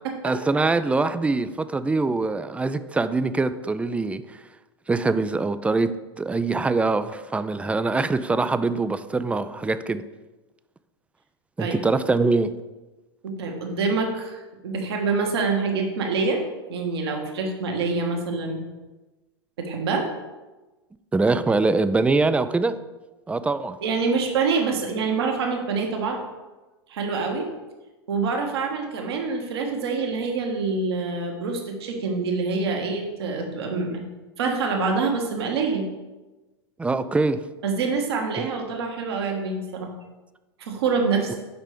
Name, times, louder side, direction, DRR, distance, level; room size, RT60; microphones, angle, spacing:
voice 1, 0.2-4.2 4.9-5.9 6.2-10.0 11.6-12.5 21.1-22.7 23.3-23.8 36.8-37.4 38.4-38.5 41.3-41.4, right 3 dB, 10° right, 12 dB, 0.4 m, -23 dB
voice 2, 13.2-16.4 16.7-18.6 19.6-20.1 23.8-26.2 26.9-27.5 28.1-34.0 34.4-35.8 37.6-39.9 40.6-41.4, right 4 dB, 70° right, 2 dB, 1.5 m, -26 dB
5.9 x 5.4 x 5.0 m, 1.1 s
hypercardioid pair, 90°, 14 cm